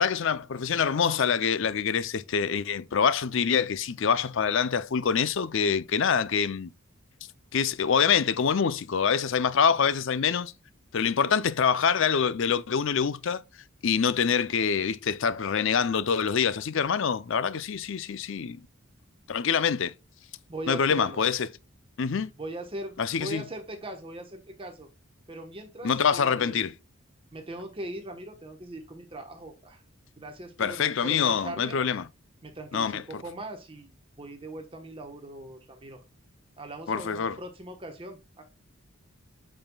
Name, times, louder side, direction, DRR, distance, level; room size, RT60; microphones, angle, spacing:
voice 1, 0.0-6.7 7.5-10.5 10.9-13.4 13.8-18.6 19.3-19.9 20.7-21.5 22.0-22.3 23.0-23.4 25.8-26.7 30.6-32.1 32.7-33.2 36.9-37.4, left 6 dB, 60° left, 0.5 m, -25 dB
voice 2, 20.5-21.2 22.4-24.9 25.3-26.6 27.3-29.8 30.2-31.8 32.4-36.0 36.6-38.4, right 1 dB, 25° right, 1.1 m, -40 dB
8.7 x 5.5 x 2.3 m
head